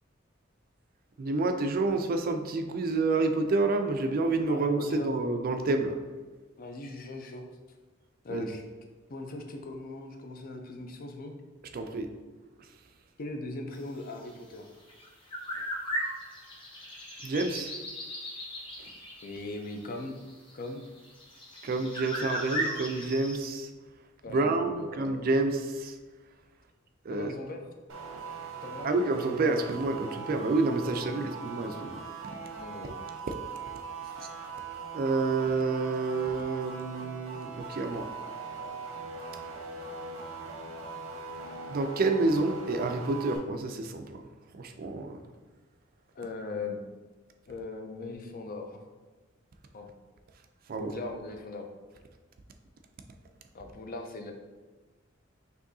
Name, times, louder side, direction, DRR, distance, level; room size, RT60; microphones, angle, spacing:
voice 1, 1.2-6.0 8.3-8.5 11.7-12.1 17.2-17.7 21.6-23.7 24.3-26.0 27.1-27.3 28.8-32.0 34.2-34.3 34.9-38.1 41.7-44.2 44.5-45.2 50.7-50.9, right 3 dB, 50° right, 6 dB, 0.4 m, -29 dB
voice 2, 4.5-5.1 6.6-7.5 8.2-8.6 9.1-11.3 13.2-14.7 19.2-20.2 20.5-20.8 24.2-25.0 27.1-27.7 28.6-28.9 30.8-31.2 32.6-33.0 46.2-46.8 47.5-48.8 49.7-49.9 50.8-51.7 53.5-54.3, left 2 dB, 45° left, 4 dB, 0.5 m, -39 dB
sound 1, 14.9-23.4, equal, 25° left, 0.9 m, -37 dB
sound 2, 27.9-43.4, right 4 dB, 75° right, 0.8 m, -41 dB
6.1 x 2.7 x 2.7 m, 1.3 s
head